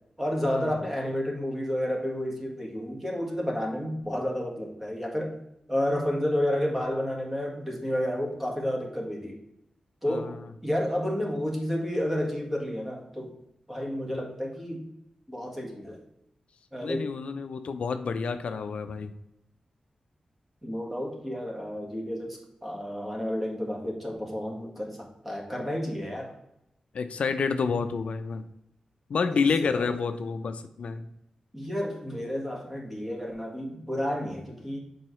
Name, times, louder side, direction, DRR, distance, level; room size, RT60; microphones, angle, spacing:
voice 1, 0.2-5.4 5.7-9.4 10.0-10.4 10.6-13.3 13.7-14.9 15.3-16.0 16.7-17.1 20.6-26.3 29.3-29.9 31.5-34.8, equal, 10° right, 0 dB, 1.5 m, -31 dB
voice 2, 10.1-10.4 16.8-19.1 26.9-28.5 29.1-31.1, left 5 dB, 70° left, 9 dB, 0.5 m, -29 dB
7.5 x 4.6 x 3.1 m, 0.83 s
wide cardioid pair, 130°, 2 cm